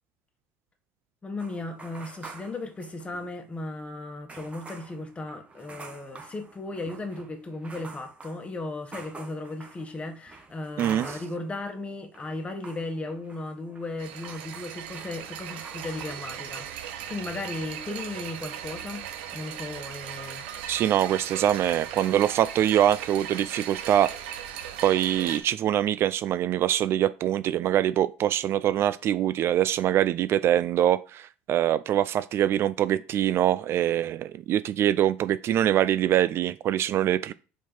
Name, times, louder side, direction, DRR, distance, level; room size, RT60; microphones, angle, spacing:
voice 1, 1.2-20.5, left 2 dB, 20° left, 1.3 m, -36 dB
sound 1, 1.4-3.4 3.7-3.8 4.3-11.7 12.0-16.3 16.5-16.9, right 4 dB, 20° right, 1.4 m, -47 dB
sound 2, 14.0-25.4, right 9 dB, 85° right, 0.9 m, -38 dB
voice 2, 20.7-24.1 24.8-37.3, right 11 dB, 50° right, 0.4 m, -24 dB
4.6 x 4.4 x 5.3 m
supercardioid pair, 95°, 6 cm